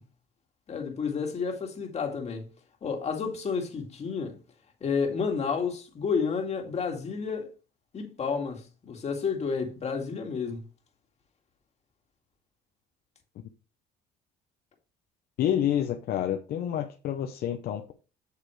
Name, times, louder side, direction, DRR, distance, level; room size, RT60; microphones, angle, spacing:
voice 1, 0.7-2.5 2.8-4.4 4.8-7.5 7.9-10.6, left 5 dB, 40° left, 2.1 m, -30 dB
voice 2, 15.4-17.9, left 10 dB, 65° left, 0.8 m, -28 dB
8.2 x 6.7 x 3.2 m
cardioid pair, 110°, 17 cm